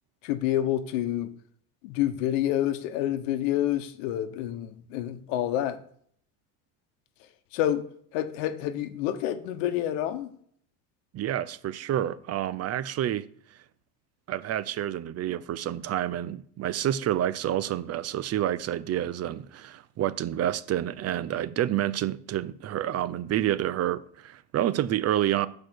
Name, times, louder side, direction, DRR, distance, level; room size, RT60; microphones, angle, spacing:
voice 1, 0.2-1.3 1.8-5.8 7.5-7.8 8.1-10.3, left 12 dB, 80° left, 1.0 m, -28 dB
voice 2, 11.1-13.3 14.3-25.5, right 12 dB, 40° right, 0.6 m, -28 dB
6.7 x 4.8 x 6.3 m
supercardioid pair, 95°, 38 cm